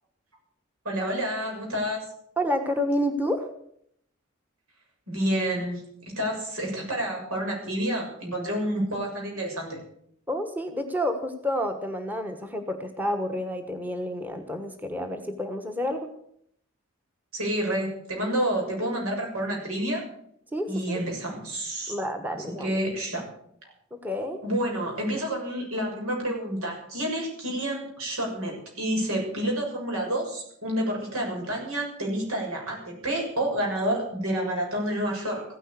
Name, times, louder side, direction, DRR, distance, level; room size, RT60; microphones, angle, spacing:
voice 1, 0.8-2.1 5.1-9.8 17.3-20.0 20.7-21.9 22.6-23.2 24.4-35.4, right 1 dB, 85° right, 1 dB, 6.9 m, -29 dB
voice 2, 2.4-3.5 10.3-16.1 20.5-21.0 21.9-22.8 23.9-24.4, equal, 10° right, 6 dB, 1.2 m, -29 dB
15.5 x 10.0 x 8.2 m, 0.69 s
head